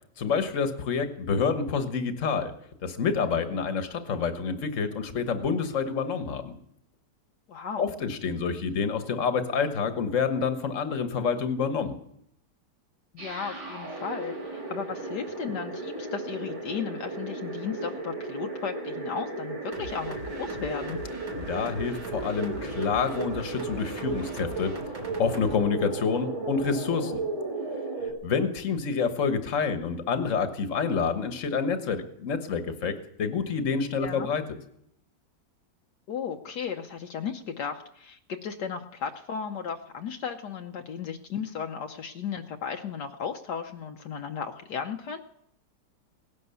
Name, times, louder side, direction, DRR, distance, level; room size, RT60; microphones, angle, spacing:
voice 1, 0.2-2.5 2.8-6.5 7.8-11.9 21.4-24.7 25.2-27.2 28.0-34.4, left 5 dB, 50° left, 8 dB, 1.6 m, -28 dB
voice 2, 7.5-7.9 13.1-21.0 31.2-31.3 34.0-34.3 36.1-45.2, left 7 dB, 75° left, 4 dB, 1.4 m, -35 dB
sound 1, 13.2-28.1, right 3 dB, 70° right, 4.0 m, -35 dB
sound 2, 19.7-25.5, right 1 dB, 55° right, 2.3 m, -42 dB
17.5 x 11.0 x 6.9 m, 0.74 s
omnidirectional pair, 1.9 m